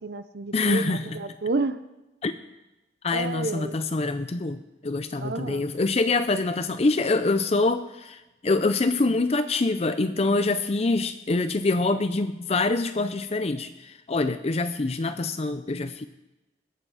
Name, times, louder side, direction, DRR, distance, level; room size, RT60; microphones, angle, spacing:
voice 1, 0.0-1.8 3.1-3.8 5.2-5.7, right 3 dB, 60° right, 12 dB, 0.6 m, -30 dB
voice 2, 0.5-1.2 2.2-2.3 3.0-16.1, left 3 dB, 35° left, 10 dB, 0.5 m, -25 dB
21.0 x 7.8 x 4.9 m, 1.0 s
head